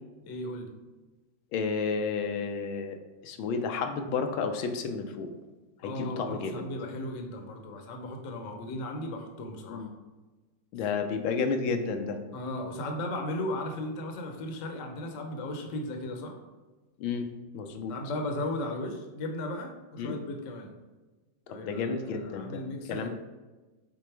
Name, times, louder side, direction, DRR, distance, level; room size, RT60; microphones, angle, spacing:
voice 1, 0.2-0.7 5.8-9.9 12.3-16.4 17.9-20.8 21.5-23.1, left 1 dB, 50° left, 3 dB, 1.0 m, -36 dB
voice 2, 1.5-3.0 3.2-5.3 5.8-6.6 9.7-9.9 10.7-12.2 17.0-17.3 17.5-17.9 20.0-20.2 21.6-22.6 22.9-23.1, left 5 dB, 90° left, 5 dB, 1.5 m, -31 dB
7.8 x 3.9 x 3.4 m, 1.2 s
omnidirectional pair, 2.1 m